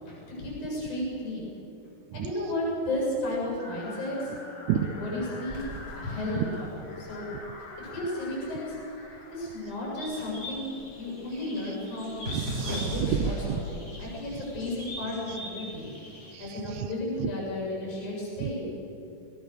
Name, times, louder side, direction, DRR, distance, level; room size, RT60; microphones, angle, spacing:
voice 1, 0.0-1.5 2.1-4.3 4.9-5.6 6.0-6.7 7.0-7.3 7.8-8.8 9.3-12.3 12.7-15.9 16.4-18.6, left 1 dB, 70° left, -4 dB, 9.3 m, -33 dB
sound 1, 3.6-9.8, left 2 dB, 85° left, 4.4 m, -45 dB
sound 2, 5.5-8.0 8.3-10.9 11.2-14.0 14.7-15.1, equal, 20° right, 5.3 m, -37 dB
sound 3, 10.0-16.3, equal, 35° left, 8.4 m, -43 dB
voice 2, 12.3-13.6 16.3-16.9 17.2-17.3 18.4-18.6, right 11 dB, 80° right, 10 dB, 2.2 m, -30 dB
22.5 x 21.5 x 6.9 m, 2.7 s
omnidirectional pair, 3.5 m